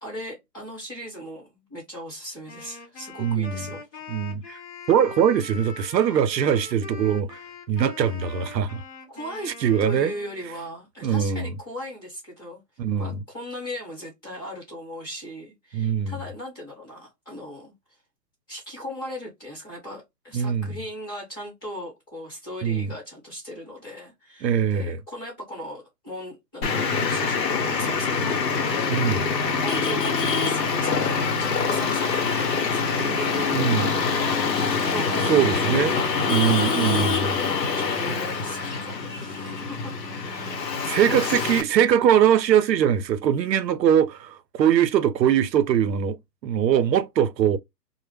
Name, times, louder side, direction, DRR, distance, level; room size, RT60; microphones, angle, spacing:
voice 1, 0.0-3.8 9.1-9.5 9.8-12.6 13.0-17.7 18.5-28.2 28.7-29.3 29.6-36.8 37.3-41.4, equal, 15° left, 1.0 m, -38 dB
Wind instrument woodwind instrument, 2.5-10.6, left 4 dB, 40° left, 0.8 m, -42 dB
voice 2, 3.2-3.6 4.1-4.6 4.9-7.4 7.7-8.8 9.6-10.1 11.0-11.5 12.8-13.2 15.7-16.1 20.3-20.7 22.6-22.9 24.4-25.0 28.9-29.2 33.5-33.9 35.2-37.4 40.9-46.2 46.4-47.6, right 8 dB, 85° right, 0.6 m, -22 dB
Traffic noise roadway noise, 26.6-41.6, left 5 dB, 85° left, 0.9 m, -25 dB
2.1 x 2.0 x 3.1 m
hypercardioid pair, 165°, 49 cm